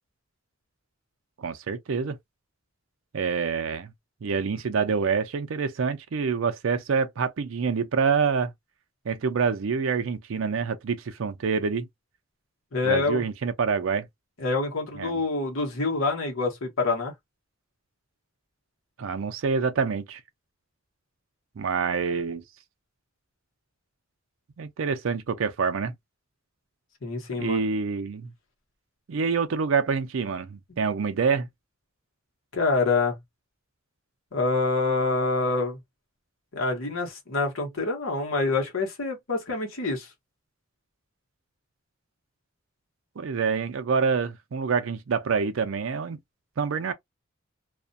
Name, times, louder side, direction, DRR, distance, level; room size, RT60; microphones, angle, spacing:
voice 1, 1.4-2.2 3.1-3.9 4.2-8.5 9.1-11.9 12.8-14.1 15.0-15.2 19.0-20.2 21.6-22.4 24.6-25.9 27.4-28.3 29.1-31.5 43.2-46.2 46.6-46.9, right 5 dB, 75° right, 0.4 m, -26 dB
voice 2, 12.7-13.2 14.4-17.1 27.0-27.7 32.5-33.2 34.3-35.8 36.5-40.1, left 3 dB, 85° left, 1.0 m, -26 dB
2.4 x 2.1 x 2.5 m
head